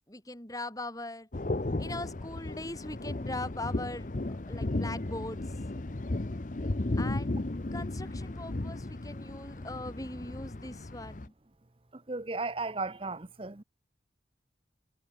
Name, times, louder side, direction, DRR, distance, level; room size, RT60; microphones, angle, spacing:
voice 1, 0.1-1.3 1.8-5.6 7.0-7.4 7.7-11.3, left 2 dB, 20° left, 4.7 m, -40 dB
sound 1, 1.3-11.3, left 2 dB, 45° left, 0.8 m, -35 dB
voice 2, 11.9-13.6, right 3 dB, 30° right, 0.9 m, -35 dB
head